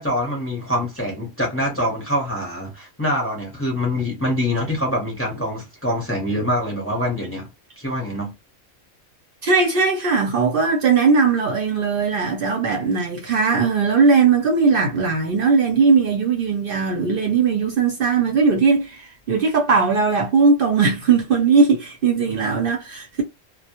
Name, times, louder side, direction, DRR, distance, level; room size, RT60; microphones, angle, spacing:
voice 1, 0.0-7.5 7.8-8.3, left 1 dB, 15° left, 0.6 m, -24 dB
voice 2, 9.4-19.0 19.3-23.2, right 4 dB, 60° right, 0.6 m, -18 dB
2.1 x 2.1 x 2.8 m
omnidirectional pair, 1.3 m